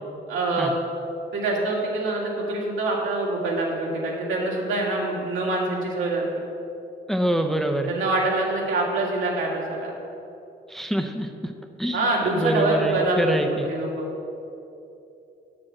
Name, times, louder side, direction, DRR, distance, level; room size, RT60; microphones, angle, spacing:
voice 1, 0.3-0.7 1.3-6.3 7.9-9.9 11.9-13.3 13.6-14.1, right 2 dB, 80° right, -3 dB, 2.3 m, -25 dB
voice 2, 7.1-7.9 10.7-11.5 11.8-13.7, right 1 dB, ahead, 5 dB, 0.6 m, -26 dB
7.7 x 6.1 x 7.6 m, 2.7 s
cardioid pair, 90°, 20 cm